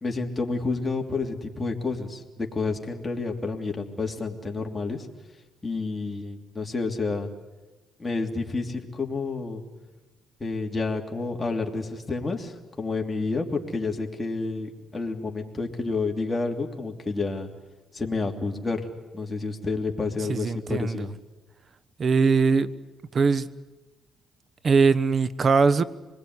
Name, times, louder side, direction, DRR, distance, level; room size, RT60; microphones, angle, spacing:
voice 1, 0.0-2.2 2.5-5.1 5.6-7.3 8.0-9.6 10.4-17.5 17.9-18.9 19.1-21.1, left 3 dB, 20° left, 1 dB, 3.2 m, -29 dB
voice 2, 20.3-21.1 22.0-22.7 23.1-23.5 24.6-25.8, right 4 dB, 45° right, 15 dB, 1.1 m, -21 dB
26.0 x 20.5 x 9.7 m, 1.1 s
cardioid pair, 90°, 0 cm